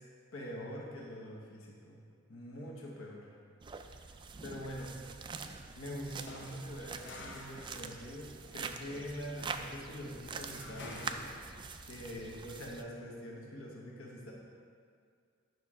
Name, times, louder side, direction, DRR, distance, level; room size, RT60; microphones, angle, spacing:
voice 1, 0.3-2.0 2.3-3.3 3.8-5.0 5.7-11.5 11.8-14.3, equal, 80° left, -3 dB, 1.1 m, -44 dB
sound 1, 3.6-12.8, right 4 dB, 25° right, 0.3 m, -45 dB
sound 2, 6.0-11.9, left 2 dB, 60° left, 0.9 m, -50 dB
9.5 x 6.0 x 3.7 m, 2.2 s
head